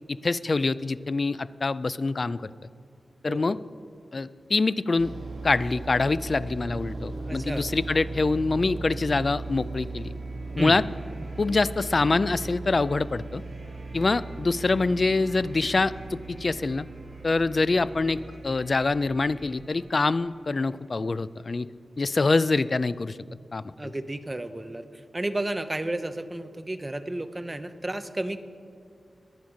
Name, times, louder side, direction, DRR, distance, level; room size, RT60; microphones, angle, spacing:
voice 1, 0.1-2.5 3.2-3.6 4.1-5.1 5.4-10.1 10.6-10.8 11.4-13.4 13.9-16.9 17.2-18.2 18.4-21.7 22.0-23.2 23.5-23.9, left 3 dB, 35° left, 16 dB, 0.4 m, -25 dB
voice 2, 3.2-3.6 7.2-7.6 10.6-10.8 23.8-24.8 25.1-28.4, right 1 dB, 15° right, 9 dB, 0.7 m, -32 dB
sound 1, 5.0-20.0, right 3 dB, 60° right, 2.7 m, -38 dB
sound 2, 9.2-21.8, right 2 dB, 40° right, 2.5 m, -55 dB
22.0 x 8.9 x 6.3 m, 2.3 s
wide cardioid pair, 150°, 0 cm